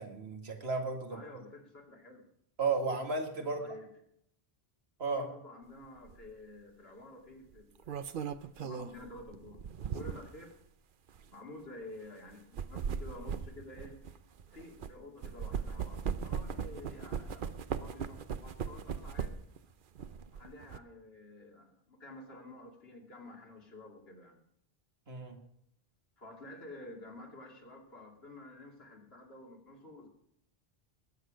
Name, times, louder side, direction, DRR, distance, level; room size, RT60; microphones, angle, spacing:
voice 1, 0.0-1.2 2.6-3.6 5.0-5.3 25.1-25.4, right 4 dB, 80° right, 4 dB, 2.2 m, -34 dB
voice 2, 1.1-2.3 3.4-3.9 5.1-10.5 11.3-14.0 14.4-19.3 20.3-24.4 26.2-30.1, left 2 dB, 75° left, 1 dB, 2.9 m, -50 dB
sound 1, 6.1-6.3 7.5-10.4 11.1-11.2 12.3-14.9 15.2-19.6 20.0-20.8, right 7 dB, 60° right, 0.8 m, -38 dB
20.5 x 8.3 x 5.1 m, 0.73 s
omnidirectional pair, 1.0 m